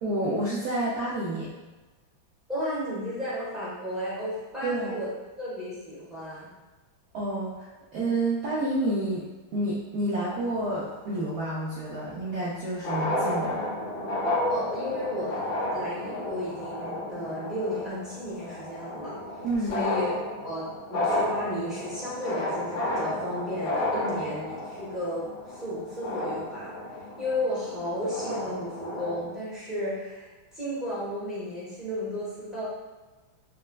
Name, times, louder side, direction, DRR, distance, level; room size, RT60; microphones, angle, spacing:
voice 1, 0.0-1.5 4.6-5.0 7.1-9.2 9.5-13.7 19.4-19.8, right 1 dB, 80° right, -7 dB, 0.8 m, -29 dB
voice 2, 2.5-5.1 5.4-6.5 14.2-19.1 19.6-26.7 27.2-32.6, left 1 dB, ahead, -11 dB, 0.5 m, -33 dB
sound 1, 10.2-11.3 12.5-12.6 12.7-29.3, left 1 dB, 50° left, 1.6 m, -32 dB
4.2 x 2.2 x 2.2 m, 1.2 s
omnidirectional pair, 2.2 m